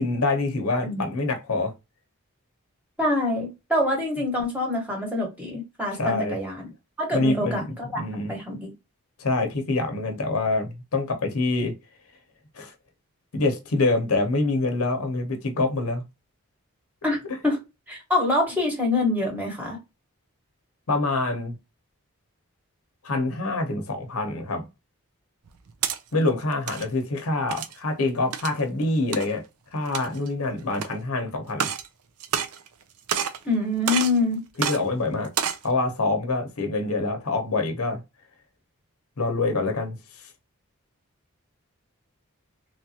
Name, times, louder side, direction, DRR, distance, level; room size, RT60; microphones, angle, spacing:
voice 1, 0.0-1.7 5.9-6.4 7.1-8.3 9.2-11.7 12.6-12.7 13.3-16.0 20.9-21.6 23.0-24.6 26.1-29.4 29.7-31.7 34.6-35.3 35.6-38.0 39.2-40.0, left 2 dB, 75° left, 0.8 m, -25 dB
voice 2, 3.0-6.7 7.0-8.0 8.3-8.7 17.0-17.6 17.9-19.8 33.4-34.4, left 2 dB, 5° right, 1.2 m, -25 dB
sound 1, 25.5-26.0 26.5-26.8 27.5-27.8 28.3-28.6 29.1-29.3 29.8-30.3 30.8-30.9 31.5-31.9 32.2-32.8 33.1-33.4 33.9-34.2 34.6-34.8 35.2-35.6, right 8 dB, 85° right, 0.5 m, -28 dB
3.2 x 2.4 x 2.8 m
head